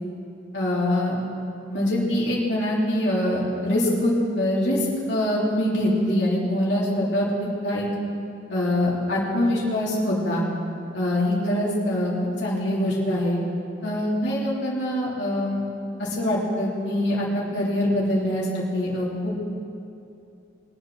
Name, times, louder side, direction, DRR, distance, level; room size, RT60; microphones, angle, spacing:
voice 1, 0.5-1.2 1.7-7.8 8.5-10.5 10.9-13.4 13.8-15.6 16.0-19.4, left 1 dB, 75° left, -6 dB, 3.2 m, -24 dB
22.0 x 8.1 x 6.2 m, 2.7 s
head